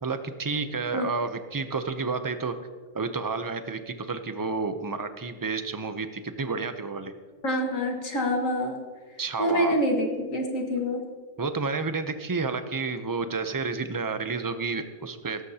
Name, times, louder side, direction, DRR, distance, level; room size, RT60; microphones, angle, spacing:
voice 1, 0.0-2.5 2.9-7.1 9.2-9.8 11.4-15.4, right 4 dB, 30° right, 9 dB, 0.4 m, -30 dB
voice 2, 7.4-8.8 9.4-11.0, equal, 80° left, 2 dB, 2.2 m, -26 dB
16.5 x 14.0 x 2.8 m, 1.5 s
omnidirectional pair, 1.4 m